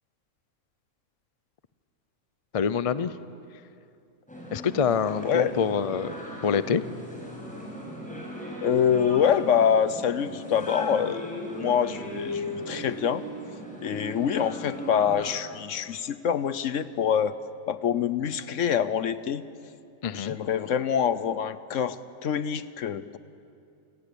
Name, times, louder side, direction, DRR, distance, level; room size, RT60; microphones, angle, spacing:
voice 1, 2.5-3.1 4.5-6.1 6.4-6.8 20.0-20.3, left 6 dB, 45° left, 14 dB, 0.4 m, -26 dB
sound 1, 4.3-15.3, equal, 5° left, 6.3 m, -37 dB
voice 2, 5.2-5.6 8.6-13.2 13.8-17.4 17.7-19.4 20.1-23.2, left 8 dB, 65° left, 14 dB, 1.1 m, -25 dB
29.0 x 17.0 x 9.9 m, 2.5 s
omnidirectional pair, 1.5 m